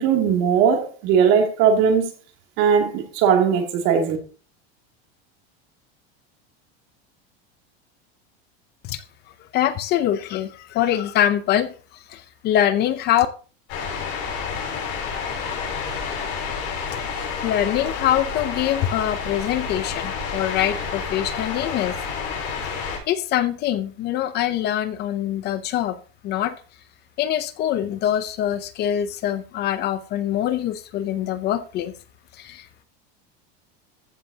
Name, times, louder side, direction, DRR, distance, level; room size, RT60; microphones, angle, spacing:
voice 1, 0.0-2.1 2.6-4.2, right 7 dB, 55° right, 2.6 m, -19 dB
voice 2, 9.5-11.7 12.1-13.3 17.2-22.0 22.6-22.7 23.1-26.0 26.2-26.5 27.2-31.9 32.3-32.8, left 11 dB, 35° left, 0.6 m, -24 dB
sound 1, 13.7-23.0, left 6 dB, 50° left, 5.3 m, -29 dB
14.5 x 7.6 x 2.8 m
supercardioid pair, 160°, 31 cm